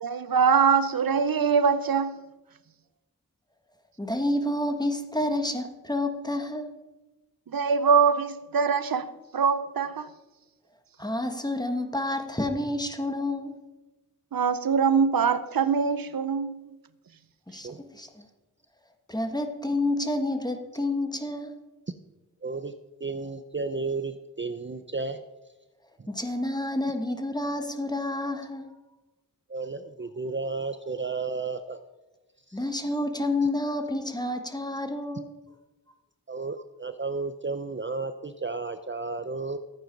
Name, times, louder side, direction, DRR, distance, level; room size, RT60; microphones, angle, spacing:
voice 1, 0.0-2.2 7.5-10.1 14.3-16.8, right 6 dB, 85° right, 0.7 m, -23 dB
voice 2, 4.0-6.7 11.0-13.5 17.5-18.2 19.1-21.5 26.1-28.7 32.5-35.3, left 1 dB, 10° left, 1.4 m, -29 dB
voice 3, 22.4-22.7 23.0-25.2 29.5-31.8 32.5-32.6 36.3-39.6, right 3 dB, 35° right, 0.6 m, -33 dB
13.5 x 9.1 x 5.2 m
wide cardioid pair, 60°, 34 cm